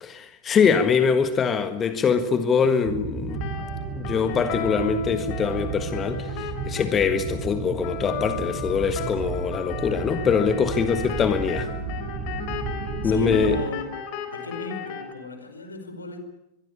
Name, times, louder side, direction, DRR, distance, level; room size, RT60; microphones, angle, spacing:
voice 1, 0.0-3.4 3.9-11.7 13.0-13.6, left 6 dB, 25° left, 1.6 m, -23 dB
sound 1, 2.8-13.6, right 5 dB, 30° right, 4.8 m, -33 dB
sound 2, 3.3-15.1, left 5 dB, 45° left, 4.5 m, -35 dB
voice 2, 13.0-13.8 14.3-16.2, left 3 dB, 75° left, 5.0 m, -34 dB
23.5 x 23.0 x 8.6 m
figure-of-eight pair, 90°, 0 cm